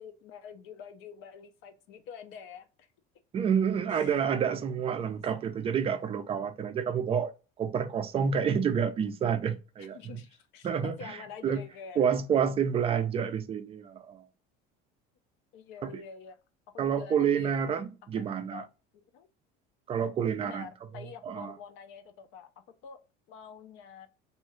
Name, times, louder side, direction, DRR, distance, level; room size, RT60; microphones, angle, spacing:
voice 1, 0.0-2.9 3.9-4.2 5.0-5.1 9.8-12.1 15.5-16.4 16.7-17.5 18.2-18.7 18.9-19.3 20.4-22.5 22.8-23.0 23.3-24.1, left 7 dB, 60° left, 0.5 m, -47 dB
voice 2, 3.3-7.3 7.6-10.2 10.6-11.6 12.0-14.3 15.8-16.0 16.8-18.7 19.9-20.7 20.9-21.6, right 7 dB, 25° right, 0.4 m, -29 dB
2.8 x 2.2 x 2.9 m
cardioid pair, 130°, 21 cm